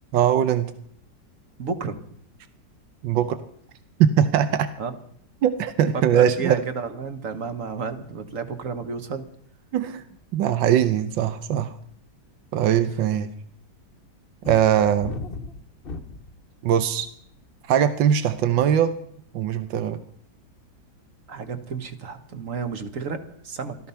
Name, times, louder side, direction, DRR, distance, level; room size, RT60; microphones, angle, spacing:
voice 1, 0.1-0.7 3.0-3.4 4.0-4.7 5.4-6.6 9.7-10.0 10.3-11.7 12.5-13.3 14.4-15.2 16.6-17.1 17.7-18.9 19.3-20.0, right 9 dB, 90° right, 11 dB, 1.6 m, -21 dB
voice 2, 1.6-2.0 4.8-4.9 5.9-9.2 21.3-23.8, right 5 dB, 45° right, 8 dB, 1.7 m, -31 dB
sound 1, 14.4-16.4 17.1-17.5, left 4 dB, 35° left, 1.1 m, -35 dB
17.0 x 13.5 x 5.7 m, 0.66 s
omnidirectional pair, 2.0 m